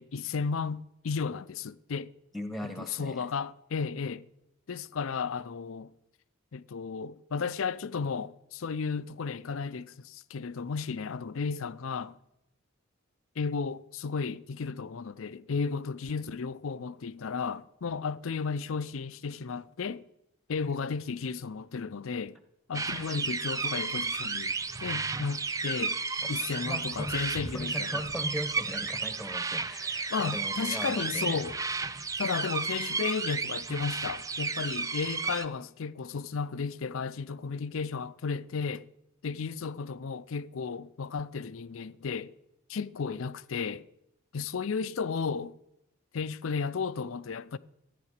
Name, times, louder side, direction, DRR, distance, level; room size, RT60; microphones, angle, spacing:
voice 1, 0.0-2.1 2.8-4.2 4.7-5.9 6.5-12.2 13.4-20.0 20.5-22.4 22.7-24.5 24.8-26.0 26.3-28.1 30.1-31.6 32.2-38.9 39.2-42.3 42.7-43.9 44.3-45.5 46.1-47.6, left 5 dB, 70° left, 0.5 m, -34 dB
voice 2, 2.3-3.3 22.9-23.2 26.2-31.4, equal, ahead, 1.2 m, -39 dB
sound 1, 22.7-35.5, right 4 dB, 15° right, 0.4 m, -33 dB
14.0 x 9.5 x 6.6 m
head